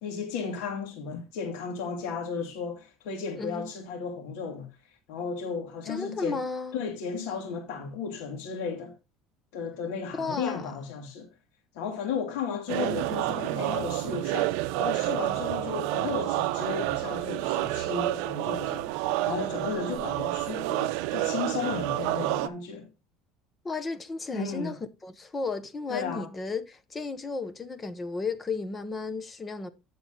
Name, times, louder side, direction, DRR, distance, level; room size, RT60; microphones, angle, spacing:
voice 1, 0.0-4.7 5.1-6.4 6.7-8.9 9.5-11.3 11.7-18.9 19.2-22.9 24.3-24.7 25.9-26.3, left 6 dB, 75° left, 2.0 m, -34 dB
voice 2, 3.4-3.7 5.8-6.8 10.2-10.7 23.6-29.7, left 3 dB, 15° left, 0.8 m, -34 dB
sound 1, 12.7-22.5, right 17 dB, 75° right, 0.6 m, -29 dB
9.0 x 6.8 x 3.8 m
cardioid pair, 165°, 0 cm